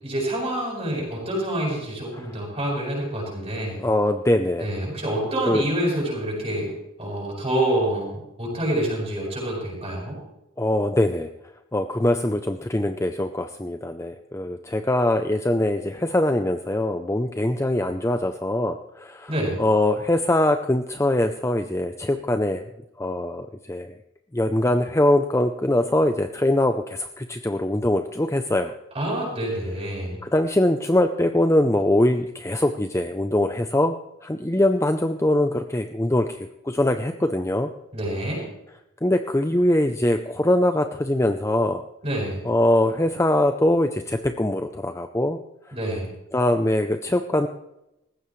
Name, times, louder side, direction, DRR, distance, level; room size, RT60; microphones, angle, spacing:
voice 1, 0.0-3.9 4.6-6.7 7.0-10.2 19.3-19.6 28.9-30.2 37.9-38.4 42.0-42.4 45.7-46.1, right 1 dB, 30° right, -3 dB, 7.4 m, -27 dB
voice 2, 3.8-4.7 5.5-5.6 10.6-11.3 11.7-19.3 19.6-22.6 23.0-23.9 24.3-28.7 30.2-34.0 34.2-37.7 39.0-41.8 42.4-45.4 46.3-47.5, left 1 dB, 15° left, 7 dB, 0.5 m, -22 dB
19.5 x 15.5 x 3.2 m, 0.87 s
head